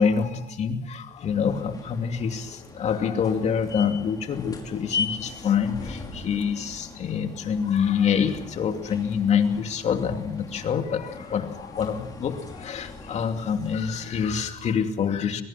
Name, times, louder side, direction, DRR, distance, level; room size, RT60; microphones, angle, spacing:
voice 1, 0.0-15.4, left 7 dB, 55° left, 6 dB, 2.7 m, -26 dB
sound 1, 1.1-14.7, left 4 dB, 25° left, 5.2 m, -39 dB
22.5 x 22.0 x 6.0 m, 0.81 s
cardioid pair, 100°, 14 cm